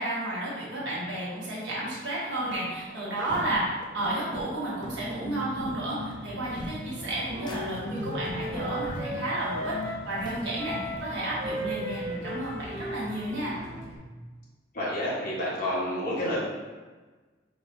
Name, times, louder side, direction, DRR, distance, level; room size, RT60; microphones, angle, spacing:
voice 1, 0.0-3.6 3.9-13.5, right 1 dB, 65° right, -7 dB, 1.4 m, -32 dB
sound 1, 2.3-11.0, equal, 25° left, 0.4 m, -40 dB
sound 2, 4.8-14.0, right 1 dB, 75° left, 1.1 m, -44 dB
Wind instrument woodwind instrument, 6.9-10.1 10.5-13.9, equal, 35° right, 1.0 m, -37 dB
voice 2, 14.7-16.5, left 1 dB, 45° left, -7 dB, 1.3 m, -29 dB
4.9 x 3.0 x 2.7 m, 1.3 s
head